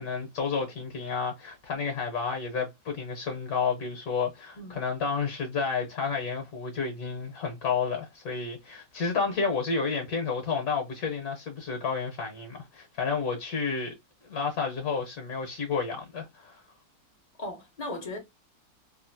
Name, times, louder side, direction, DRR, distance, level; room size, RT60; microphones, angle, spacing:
voice 1, 0.0-13.9 14.2-16.6, left 5 dB, 65° left, 1.2 m, -31 dB
voice 2, 4.6-4.9 9.2-9.4 17.4-18.2, left 1 dB, 40° left, 0.6 m, -37 dB
3.0 x 2.5 x 2.5 m
omnidirectional pair, 1.9 m